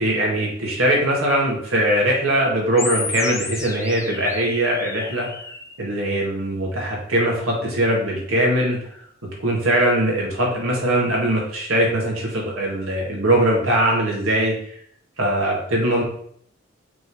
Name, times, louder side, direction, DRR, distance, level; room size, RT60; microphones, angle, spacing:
voice 1, 0.0-5.3 5.8-8.8 9.4-14.5 15.2-16.0, right 1 dB, 85° right, -2 dB, 2.2 m, -21 dB
sound 1, 2.8-5.8, left 4 dB, 15° left, 0.6 m, -32 dB
6.0 x 3.8 x 4.9 m, 0.65 s
head